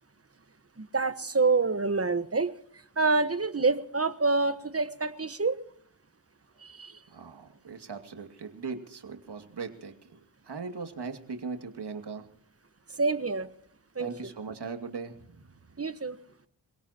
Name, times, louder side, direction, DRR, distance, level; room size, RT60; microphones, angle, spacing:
voice 1, 0.8-2.5 3.0-5.6 6.6-7.0 13.0-13.5 13.9-14.1 15.8-16.2, right 3 dB, 35° right, 12 dB, 1.3 m, -27 dB
voice 2, 7.1-10.2 10.4-12.3 14.0-15.5, right 5 dB, 65° right, 6 dB, 2.5 m, -39 dB
28.5 x 17.5 x 2.9 m, 0.63 s
cardioid pair, 55°, 42 cm